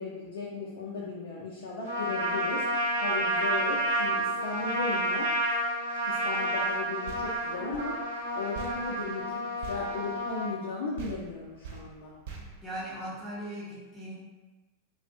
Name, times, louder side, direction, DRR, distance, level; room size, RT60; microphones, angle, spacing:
voice 1, 0.0-2.6 3.0-5.3 6.1-8.0 8.3-12.1, left 3 dB, 60° left, -5 dB, 0.4 m, -36 dB
Trumpet, 1.8-10.5, right 1 dB, 80° right, 0.7 m, -30 dB
sound 1, 7.1-10.7 11.0-13.4, right 5 dB, 50° right, 0.4 m, -46 dB
voice 2, 12.6-14.1, right 1 dB, 5° left, -10 dB, 0.7 m, -38 dB
2.4 x 2.1 x 2.7 m, 1.2 s
figure-of-eight pair, 90°, 0 cm